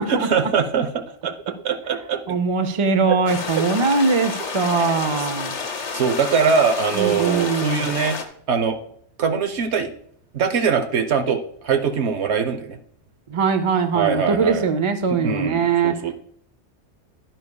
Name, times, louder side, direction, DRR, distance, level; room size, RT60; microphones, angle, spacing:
voice 1, 0.0-2.4 3.1-3.2 3.6-3.7 4.8-5.3 5.9-8.2 8.5-8.8 9.2-9.9 10.3-12.8 13.9-14.7 15.1-16.1, right 6 dB, 75° right, 7 dB, 1.1 m, -22 dB
voice 2, 2.3-5.6 7.0-7.9 13.3-15.9, right 5 dB, 35° right, 8 dB, 0.5 m, -21 dB
sound 1, 3.3-8.2, left 5 dB, 80° left, 1.4 m, -30 dB
11.0 x 10.0 x 2.3 m, 0.65 s
omnidirectional pair, 1.2 m